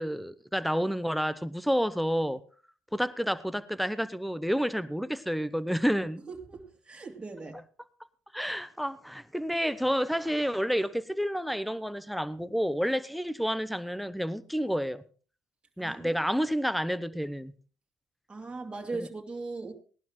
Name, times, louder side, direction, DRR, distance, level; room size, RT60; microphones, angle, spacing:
voice 1, 0.0-2.4 2.9-6.2 8.3-15.0 15.8-17.5 19.0-19.1, equal, ahead, 16 dB, 0.9 m, -29 dB
voice 2, 6.3-7.6 15.8-16.1 18.3-19.7, right 3 dB, 20° right, 0 dB, 2.8 m, -39 dB
18.5 x 11.5 x 3.1 m, 0.38 s
supercardioid pair, 70°, 4 cm